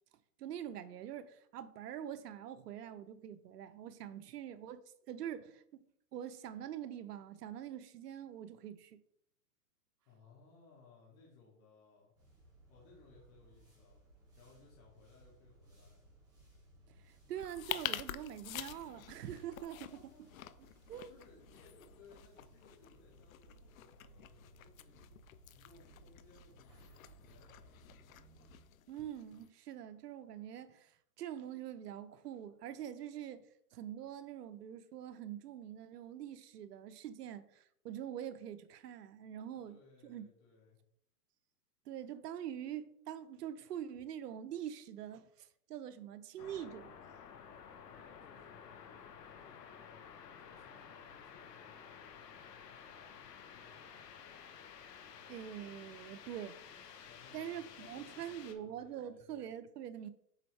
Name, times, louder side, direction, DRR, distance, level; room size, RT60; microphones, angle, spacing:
voice 1, 0.4-5.8 6.1-9.0 17.0-19.8 20.9-21.1 28.9-33.5 33.7-39.8 40.0-40.2 41.9-47.0 55.3-57.0 57.3-60.1, right 10 dB, 80° right, 0.8 m, -45 dB
voice 2, 10.0-12.1 12.7-14.0 14.4-16.0 19.5-25.1 25.5-27.7 39.5-40.8 47.9-50.0 50.4-54.0 57.1-59.3, left 4 dB, 40° left, 2.3 m, -63 dB
sound 1, 12.1-28.6, right 1 dB, 10° right, 1.9 m, -62 dB
sound 2, 17.3-29.5, left 12 dB, 60° left, 0.5 m, -48 dB
sound 3, 46.4-58.5, left 7 dB, 85° left, 1.1 m, -53 dB
7.5 x 4.3 x 3.2 m
hypercardioid pair, 155°, 47 cm